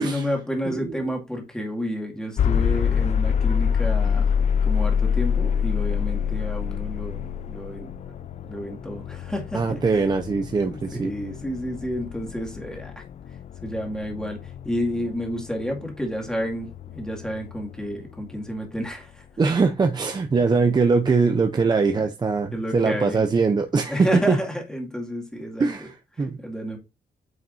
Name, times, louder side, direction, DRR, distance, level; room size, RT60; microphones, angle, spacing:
voice 1, 0.0-4.3 4.6-7.9 8.4-10.0 10.7-13.0 13.6-19.6 21.9-22.0 22.5-23.3 23.9-25.7 26.2-26.8, equal, 5° left, 2.2 m, -30 dB
sound 1, 2.4-18.3, left 7 dB, 45° left, 0.4 m, -26 dB
voice 2, 9.5-11.1 19.4-24.4 25.6-26.4, right 4 dB, 25° right, 0.6 m, -22 dB
9.0 x 5.3 x 2.6 m
wide cardioid pair, 160°, 17 cm